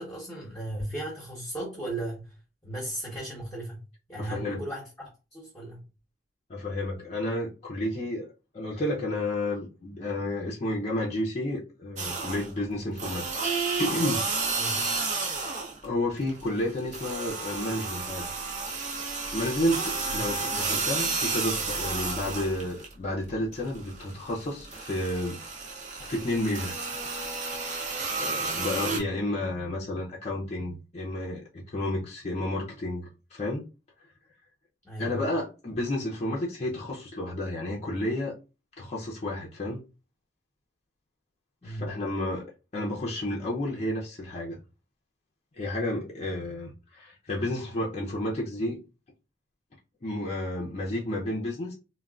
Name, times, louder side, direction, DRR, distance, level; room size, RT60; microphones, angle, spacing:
voice 1, 0.0-2.3 2.6-3.8 4.1-5.8 14.6-14.8 20.0-20.2 28.9-29.1 34.8-35.3 41.6-41.9, right 1 dB, 15° left, 1.0 m, -36 dB
voice 2, 4.2-4.6 6.5-8.3 8.5-13.5 13.8-14.3 15.0-15.2 15.8-18.3 19.3-25.4 26.0-26.9 28.2-33.7 35.0-38.3 38.8-39.8 41.6-42.5 42.7-44.6 45.6-48.8 50.0-51.7, left 1 dB, 40° left, 0.6 m, -31 dB
sound 1, 12.0-12.6 13.0-15.9 16.2-22.9 23.3-29.0, right 4 dB, 40° right, 0.7 m, -31 dB
3.5 x 2.2 x 2.3 m
head